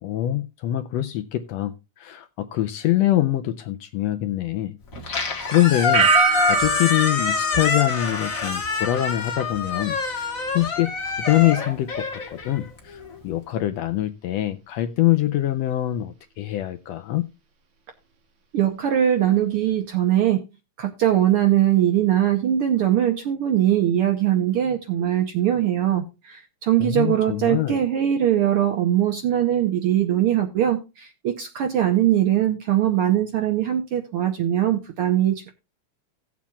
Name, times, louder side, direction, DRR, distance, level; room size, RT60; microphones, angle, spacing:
voice 1, 0.0-4.8 5.5-6.1 6.4-17.3 26.8-27.8, left 14 dB, 75° left, 1.6 m, -24 dB
Squeak, 4.9-13.2, left 5 dB, 40° left, 1.3 m, -26 dB
sound 1, 5.9-8.8 9.1-9.6, right 6 dB, 50° right, 1.7 m, -24 dB
voice 2, 18.5-20.4 20.8-35.5, right 11 dB, 65° right, 1.4 m, -21 dB
17.5 x 7.3 x 2.3 m
omnidirectional pair, 3.4 m